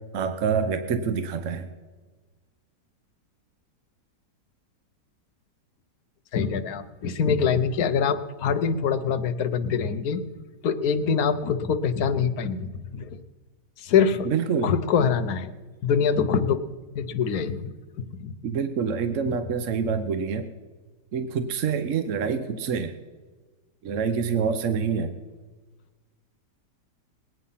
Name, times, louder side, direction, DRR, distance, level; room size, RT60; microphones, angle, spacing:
voice 1, 0.1-1.7 14.2-14.7 18.4-20.5 21.1-22.9 23.8-25.2, right 6 dB, 60° right, 9 dB, 0.9 m, -26 dB
voice 2, 6.3-10.2 10.6-13.2 13.8-14.3 14.6-15.5 15.8-16.6 16.9-18.4 19.3-19.4, left 6 dB, 60° left, 9 dB, 1.2 m, -24 dB
20.5 x 9.2 x 5.7 m, 1.4 s
omnidirectional pair, 1.9 m